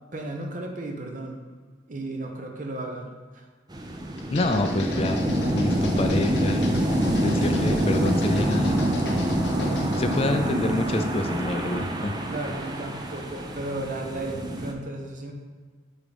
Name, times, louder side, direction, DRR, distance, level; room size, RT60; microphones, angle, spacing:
voice 1, 0.1-1.4 1.9-3.4 12.2-15.3, right 2 dB, 45° right, 2 dB, 0.8 m, -34 dB
sound 1, 3.7-14.7, right 1 dB, 25° right, 0.5 m, -26 dB
sound 2, 4.2-10.3, left 2 dB, 70° left, 0.8 m, -38 dB
voice 2, 4.3-6.6 7.1-8.8 10.0-12.1, left 2 dB, 35° left, 6 dB, 0.4 m, -27 dB
8.2 x 3.7 x 3.5 m, 1.5 s
head